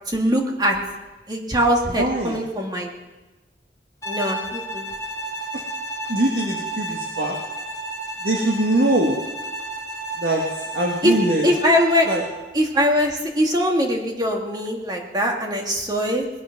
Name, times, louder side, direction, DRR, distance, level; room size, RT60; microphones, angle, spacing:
voice 1, 0.1-0.8 1.3-2.9 4.1-4.9 11.0-11.2 11.4-12.1 12.5-16.3, equal, 25° right, 1 dB, 2.1 m, -21 dB
voice 2, 1.9-2.4 5.5-5.6 6.1-7.4 8.2-9.2 10.2-11.5 12.1-12.2, right 1 dB, 60° right, 0 dB, 1.6 m, -22 dB
Bowed string instrument, 4.0-12.4, right 1 dB, 20° left, 2.1 m, -32 dB
20.5 x 11.0 x 5.9 m, 1.1 s
head